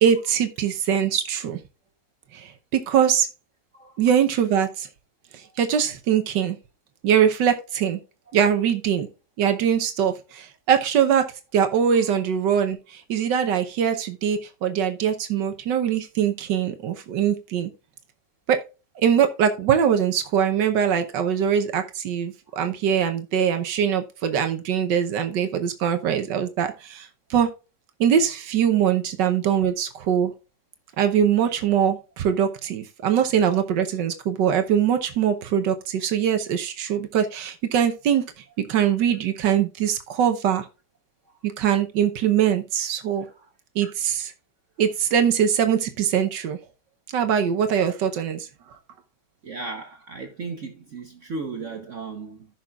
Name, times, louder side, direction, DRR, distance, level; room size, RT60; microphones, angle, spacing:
voice 1, 0.0-1.6 2.3-3.3 4.0-4.9 5.3-6.6 7.0-8.0 8.3-9.1 9.4-17.7 18.5-18.6 19.0-27.5 28.0-30.3 31.0-40.7 41.4-43.3 43.7-44.3 44.8-46.6 47.1-48.5, right 8 dB, 85° right, 1.6 m, -22 dB
voice 2, 49.4-52.5, right 4 dB, 50° right, 1.3 m, -35 dB
15.5 x 6.0 x 2.4 m
omnidirectional pair, 1.9 m